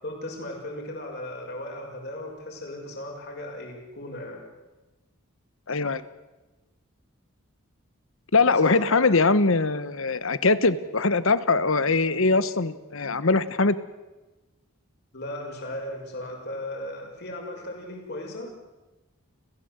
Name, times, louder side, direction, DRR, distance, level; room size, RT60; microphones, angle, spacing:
voice 1, 0.0-4.4 8.6-9.2 15.1-18.5, left 1 dB, 50° left, 1 dB, 6.0 m, -36 dB
voice 2, 5.7-6.1 8.3-13.8, left 3 dB, 65° left, 15 dB, 1.1 m, -22 dB
29.5 x 15.5 x 8.0 m, 1.1 s
head